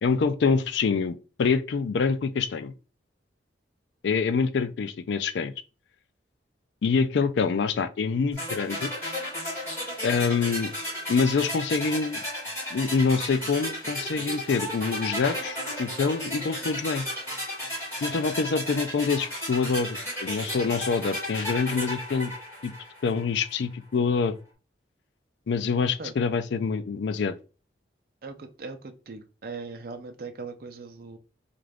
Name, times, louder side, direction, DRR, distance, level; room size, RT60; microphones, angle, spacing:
voice 1, 0.0-2.7 4.0-5.5 6.8-8.9 10.0-10.7 11.1-12.2 12.7-17.1 18.0-22.3 22.6-22.7 23.0-24.4 25.5-27.3, left 5 dB, 75° left, 0.4 m, -26 dB
sound 1, 8.4-23.3, equal, 15° left, 2.1 m, -34 dB
voice 2, 28.2-31.2, right 4 dB, 55° right, 0.5 m, -39 dB
3.8 x 2.5 x 3.3 m
head